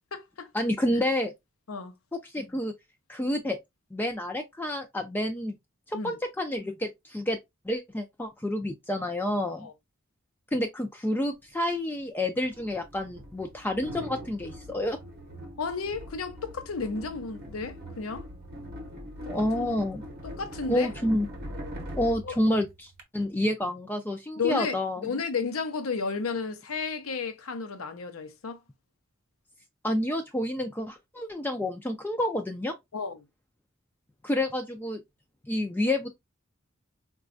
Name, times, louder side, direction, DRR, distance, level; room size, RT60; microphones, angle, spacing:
voice 1, 0.5-1.3 2.1-2.7 3.1-3.6 3.9-5.6 5.9-7.4 7.7-9.7 10.5-15.0 19.3-20.0 20.7-21.3 22.0-25.1 29.8-32.7 34.2-35.0 35.5-36.1, left 1 dB, 10° left, 0.3 m, -29 dB
sound 1, 11.4-11.5 12.4-23.0, equal, 50° right, 0.8 m, -42 dB
voice 2, 15.6-18.2 19.2-19.7 20.2-20.9 22.2-22.4 24.4-24.8 25.0-28.6 32.9-33.2, left 5 dB, 85° left, 0.6 m, -32 dB
4.1 x 2.3 x 2.4 m
head